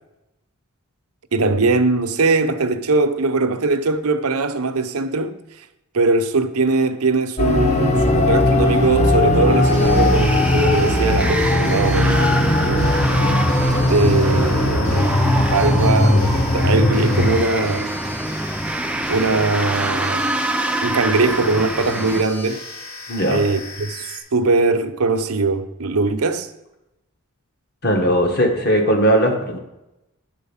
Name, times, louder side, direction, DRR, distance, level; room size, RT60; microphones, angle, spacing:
voice 1, 1.3-5.4 5.9-13.0 13.6-15.1 15.5-17.9 19.1-20.3 20.8-22.7 23.3-26.5, right 3 dB, 80° right, 0.8 m, -21 dB
sound 1, 7.4-17.4, left 1 dB, 30° left, 1.1 m, -18 dB
sound 2, 9.3-22.2, right 1 dB, 5° right, 0.5 m, -26 dB
sound 3, 9.6-24.2, left 2 dB, 70° left, 3.7 m, -37 dB
voice 2, 23.1-23.4 27.8-29.6, equal, 45° left, 1.7 m, -18 dB
10.5 x 4.5 x 7.2 m
head